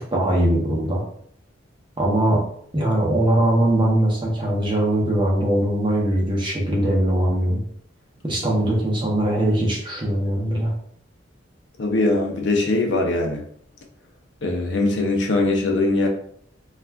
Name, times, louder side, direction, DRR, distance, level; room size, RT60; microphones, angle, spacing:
voice 1, 0.1-1.0 2.0-2.4 2.7-7.6 8.2-10.7, right 1 dB, 25° right, -3 dB, 0.7 m, -21 dB
voice 2, 11.8-13.4 14.4-16.1, left 2 dB, 65° left, 1 dB, 0.5 m, -21 dB
2.4 x 2.3 x 3.3 m, 0.63 s
head